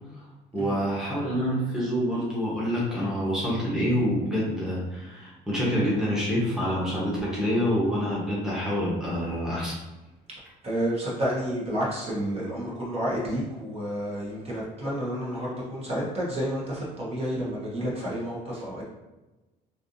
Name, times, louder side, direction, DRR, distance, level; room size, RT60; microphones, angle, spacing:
voice 1, 0.5-9.8, equal, 5° right, -7 dB, 1.1 m, -27 dB
voice 2, 10.6-18.8, equal, 35° right, -6 dB, 1.1 m, -30 dB
3.3 x 2.6 x 2.7 m, 1.1 s
cardioid pair, 110°, 17 cm